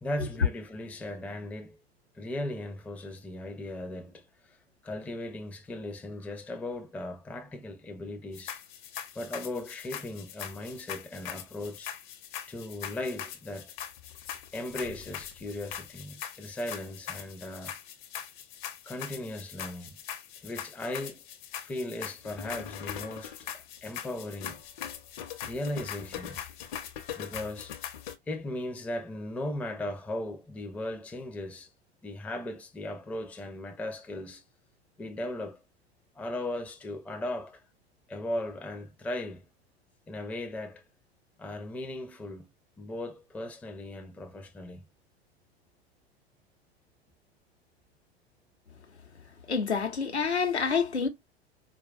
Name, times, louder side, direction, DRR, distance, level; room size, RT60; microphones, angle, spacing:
voice 1, 0.0-1.8 2.2-4.6 4.8-8.5 9.2-11.9 12.5-13.7 14.5-17.7 18.8-20.0 20.4-21.2 21.6-23.5 23.8-24.6 25.4-26.4 27.2-27.7 28.3-31.7 32.0-34.4 35.0-35.6 36.2-37.6 38.1-39.4 40.1-40.8 41.4-42.5 42.8-44.9, left 1 dB, 5° left, 0.4 m, -37 dB
sound 1, 8.3-28.2, left 10 dB, 45° left, 0.7 m, -41 dB
voice 2, 49.5-51.1, left 5 dB, 85° left, 0.8 m, -27 dB
4.4 x 2.3 x 2.3 m
figure-of-eight pair, 90°, 32 cm